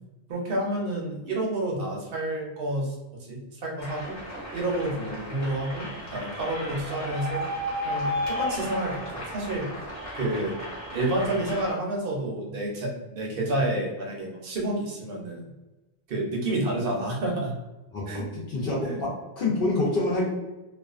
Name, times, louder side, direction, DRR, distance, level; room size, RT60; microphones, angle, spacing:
voice 1, 0.3-2.9 3.3-4.2 4.5-7.4 7.8-9.7 10.1-10.6 10.9-15.4 16.1-17.6 18.1-18.2 18.8-19.0, right 1 dB, 65° right, -1 dB, 0.8 m, -29 dB
sound 1, 3.8-11.7, left 1 dB, 15° left, 1.0 m, -34 dB
voice 2, 17.9-20.2, left 2 dB, 65° left, -5 dB, 0.8 m, -27 dB
2.3 x 2.3 x 2.4 m, 1.0 s
omnidirectional pair, 1.1 m